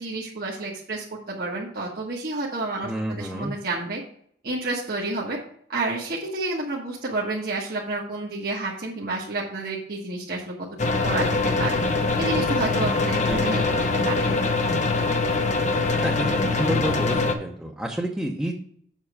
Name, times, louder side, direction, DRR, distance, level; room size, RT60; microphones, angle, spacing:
voice 1, 0.0-4.0 4.4-5.4 5.7-10.5 11.0-11.3 11.6-11.8 12.2-13.6 14.0-14.4, right 2 dB, 55° right, -4 dB, 1.3 m, -30 dB
voice 2, 2.8-3.5 13.3-13.6 16.0-16.3 16.6-18.5, equal, 5° right, -2 dB, 0.8 m, -29 dB
sound 1, 10.8-17.3, left 3 dB, 40° left, 0.8 m, -23 dB
7.3 x 6.1 x 4.8 m, 0.63 s
head